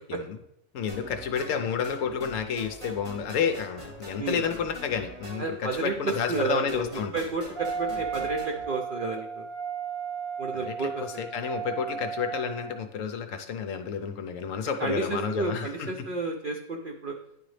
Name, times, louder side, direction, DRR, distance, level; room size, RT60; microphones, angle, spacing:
voice 1, 0.7-7.2 10.5-15.9, left 7 dB, 65° left, 6 dB, 0.9 m, -30 dB
sound 1, 0.9-8.6, equal, 20° right, 1.4 m, -43 dB
voice 2, 5.4-6.9 7.1-9.5 10.4-11.2 14.8-17.2, right 3 dB, 70° right, 3 dB, 0.5 m, -31 dB
Wind instrument woodwind instrument, 7.6-12.8, right 6 dB, 40° right, 1.8 m, -35 dB
9.9 x 3.9 x 3.2 m, 0.79 s
omnidirectional pair, 1.6 m